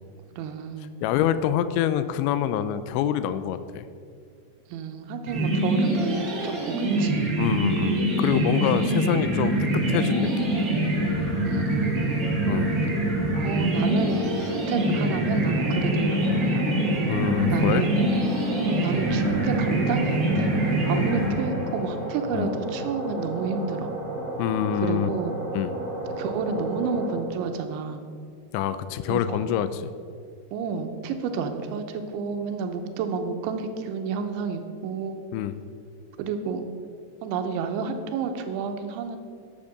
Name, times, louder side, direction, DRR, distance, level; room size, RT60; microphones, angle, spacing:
voice 1, 0.4-0.9 4.7-7.3 8.6-8.8 11.5-12.3 13.4-16.6 17.5-17.9 18.8-20.5 20.9-23.9 24.7-25.3 26.2-28.0 29.1-29.5 30.5-35.2 36.2-36.6 37.2-39.2, right 5 dB, 90° right, 7 dB, 3.3 m, -30 dB
voice 2, 1.0-3.9 7.4-10.7 12.5-12.8 17.1-17.9 22.3-22.5 24.4-25.1 25.5-25.8 28.5-29.9 35.3-35.6, left 10 dB, 85° left, 13 dB, 2.9 m, -26 dB
sound 1, 5.3-21.8, right 1 dB, 40° right, 1.7 m, -24 dB
sound 2, 10.9-27.1, right 1 dB, 15° right, 3.5 m, -34 dB
11.5 x 7.5 x 6.6 m, 2.2 s
omnidirectional pair, 5.2 m